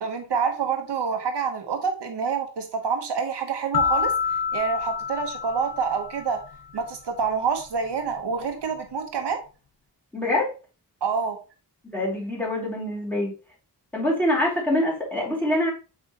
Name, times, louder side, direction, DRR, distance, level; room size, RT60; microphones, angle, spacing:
voice 1, 0.0-4.1 4.5-6.4 6.7-9.4 11.0-11.4, right 6 dB, 85° right, 5 dB, 1.2 m, -27 dB
sound 1, 3.7-6.5, left 6 dB, 60° left, 1.1 m, -27 dB
voice 2, 10.1-10.5 11.9-13.3 13.9-15.7, left 1 dB, 5° left, -4 dB, 2.7 m, -24 dB
7.6 x 4.8 x 3.0 m, 0.33 s
wide cardioid pair, 130°, 40 cm